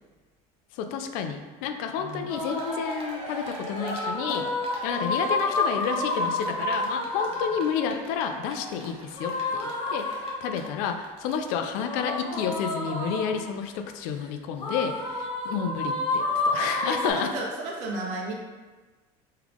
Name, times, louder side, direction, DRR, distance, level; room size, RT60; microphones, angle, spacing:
voice 1, 0.7-4.5 4.8-17.3, left 7 dB, 70° left, 6 dB, 0.4 m, -30 dB
voice 2, 2.0-2.3 7.3-7.5 16.8-18.3, right 2 dB, 80° right, -1 dB, 1.0 m, -33 dB
Cheering, 2.1-2.2 2.4-11.5 11.8-11.9 12.1-12.2, right 1 dB, 40° right, 0.8 m, -40 dB
sound 1, 2.3-2.9 3.6-7.7 9.1-10.7 11.8-13.5 14.6-17.1, left 2 dB, 35° left, 1.2 m, -29 dB
3.6 x 3.2 x 3.4 m, 1.3 s
cardioid pair, 150°, 15 cm